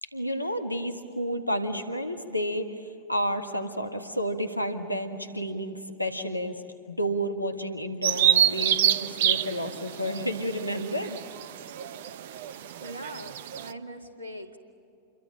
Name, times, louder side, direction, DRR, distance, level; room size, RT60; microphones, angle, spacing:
voice 1, 0.0-11.2, equal, 85° left, 7 dB, 1.6 m, -31 dB
Bird vocalization bird call bird song, 8.0-13.7, right 10 dB, 55° right, 0.8 m, -27 dB
voice 2, 12.8-14.6, right 1 dB, 80° right, 7 dB, 2.1 m, -41 dB
28.5 x 23.0 x 8.7 m, 2.7 s
figure-of-eight pair, 90°, 0 cm